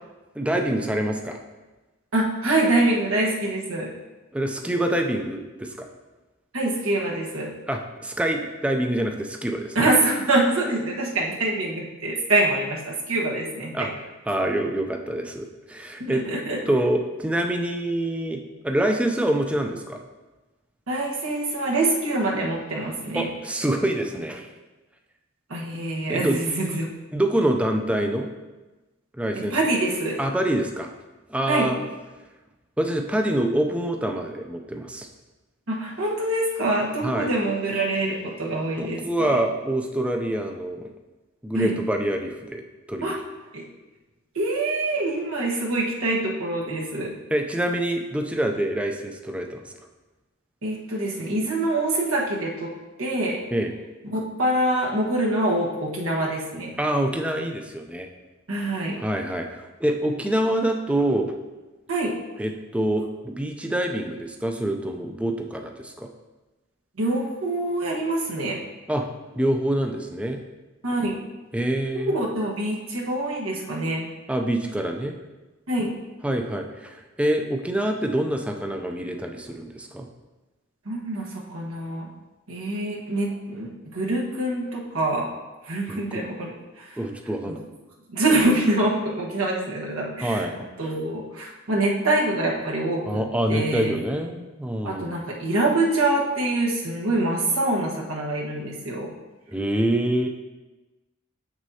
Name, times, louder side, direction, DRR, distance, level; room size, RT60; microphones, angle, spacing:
voice 1, 0.3-1.4 4.3-5.9 7.7-9.9 13.7-13.9 14.3-16.2 16.7-18.4 18.6-20.0 23.1-24.5 26.1-26.4 27.1-28.3 29.1-29.6 30.2-30.9 31.3-31.8 32.8-35.1 37.0-37.3 38.8-40.9 41.4-42.6 42.9-43.2 47.3-49.6 53.5-53.7 56.8-58.1 59.0-61.3 62.4-66.1 68.9-69.1 69.3-70.4 71.5-72.2 74.3-75.1 76.2-80.1 85.9-86.2 87.0-87.7 90.2-90.6 93.0-95.1 99.5-100.3, right 1 dB, 5° right, 3 dB, 0.4 m, -26 dB
voice 2, 2.1-3.9 6.5-7.5 9.7-13.9 16.0-16.6 20.9-23.3 25.5-26.9 29.5-30.2 31.5-31.7 35.7-39.4 41.5-41.7 43.0-43.2 43.5-43.6 44.3-47.1 50.6-52.7 53.0-53.4 54.1-56.7 58.5-59.0 61.9-62.1 67.0-68.6 70.8-71.1 71.9-74.0 75.7-75.9 80.8-82.1 82.5-85.3 85.6-86.9 87.5-87.6 88.1-90.5 90.8-93.2 93.5-93.9 94.8-99.1, right 2 dB, 90° right, -3 dB, 1.3 m, -25 dB
7.3 x 6.1 x 2.8 m, 1.1 s
head